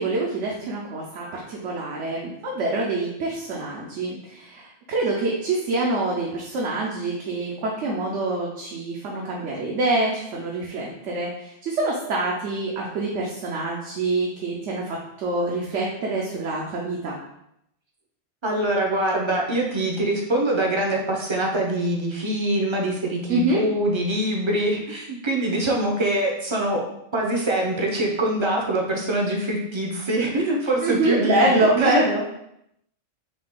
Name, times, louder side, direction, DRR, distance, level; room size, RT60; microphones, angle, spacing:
voice 1, 0.0-17.2 23.3-23.6 30.8-32.2, right 2 dB, 75° right, -3 dB, 1.0 m, -25 dB
voice 2, 18.4-26.8 27.1-32.2, right 1 dB, 30° right, 0 dB, 0.5 m, -24 dB
4.1 x 2.7 x 3.6 m, 0.79 s
omnidirectional pair, 1.3 m